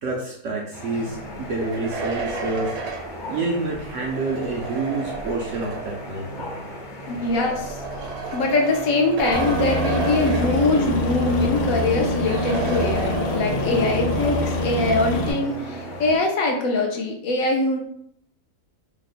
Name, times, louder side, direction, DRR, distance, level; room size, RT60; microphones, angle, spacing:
voice 1, 0.0-2.8 3.2-6.3, right 3 dB, 70° right, -2 dB, 0.8 m, -28 dB
sound 1, 0.7-16.2, left 1 dB, 40° left, 0.7 m, -36 dB
sound 2, 1.4-6.1 7.0-11.2 11.5-11.6 12.3-13.8, right 4 dB, 85° right, 1.1 m, -32 dB
voice 2, 7.1-7.8 8.3-17.8, left 2 dB, 70° left, 2 dB, 0.9 m, -22 dB
Aircraft, 9.3-15.3, left 1 dB, 85° left, 1.2 m, -25 dB
2.9 x 2.0 x 4.0 m, 0.70 s
omnidirectional pair, 1.7 m